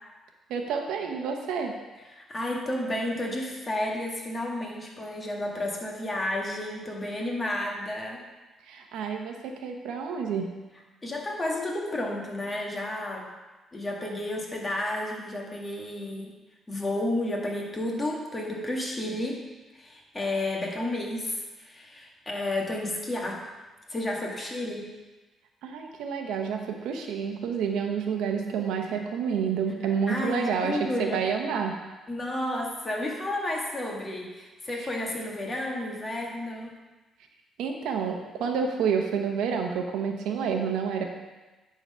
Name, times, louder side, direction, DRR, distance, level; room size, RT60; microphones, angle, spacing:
voice 1, 0.5-1.7 8.7-10.5 25.6-31.8 34.8-34.9 37.6-41.0, right 6 dB, 85° right, 3 dB, 1.0 m, -29 dB
voice 2, 2.1-8.2 11.0-13.3 13.7-16.3 16.7-19.4 19.7-23.5 23.9-24.9 30.1-31.2 32.1-36.8, left 1 dB, 25° left, -1 dB, 1.8 m, -31 dB
10.5 x 4.0 x 5.5 m, 1.2 s
cardioid pair, 90°, 0 cm